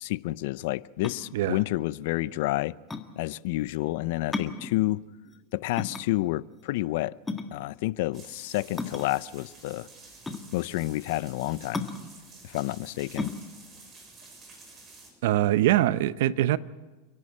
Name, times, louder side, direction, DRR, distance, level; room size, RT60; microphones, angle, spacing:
voice 1, 0.0-2.7 3.2-5.0 5.5-7.1 7.5-9.9 10.5-11.9 12.4-13.3, left 18 dB, 65° left, 0.6 m, -29 dB
sound 1, 0.9-15.2, left 3 dB, 10° left, 1.6 m, -37 dB
sound 2, 8.1-15.1, right 3 dB, 25° right, 6.1 m, -50 dB
voice 2, 15.2-16.6, right 13 dB, 70° right, 0.8 m, -23 dB
29.5 x 11.0 x 8.8 m
supercardioid pair, 125°, 0 cm